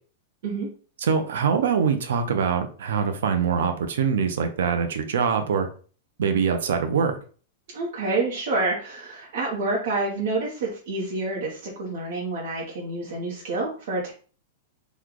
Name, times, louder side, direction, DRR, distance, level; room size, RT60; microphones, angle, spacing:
voice 1, 1.0-5.7 6.2-7.2, right 6 dB, 85° right, 7 dB, 0.6 m, -23 dB
voice 2, 7.7-14.1, right 2 dB, 55° right, -3 dB, 0.8 m, -28 dB
3.1 x 2.3 x 3.7 m, 0.40 s
supercardioid pair, 170°, 0 cm